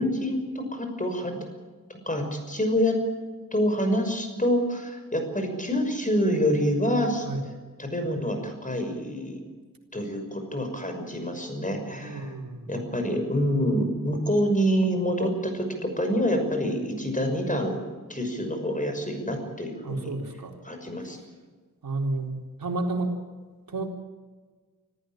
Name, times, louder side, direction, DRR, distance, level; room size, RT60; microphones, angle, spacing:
voice 1, 0.0-1.4 1.9-3.0 3.5-7.3 7.8-9.4 9.9-12.3 12.7-17.8 18.1-20.0 20.6-21.2, equal, 25° left, 5 dB, 6.0 m, -27 dB
voice 2, 12.0-12.7 19.8-20.5 21.8-22.3 22.6-23.1 23.7-23.9, right 2 dB, 85° right, 2 dB, 4.0 m, -30 dB
26.0 x 14.5 x 9.0 m, 1.4 s
wide cardioid pair, 85°, 34 cm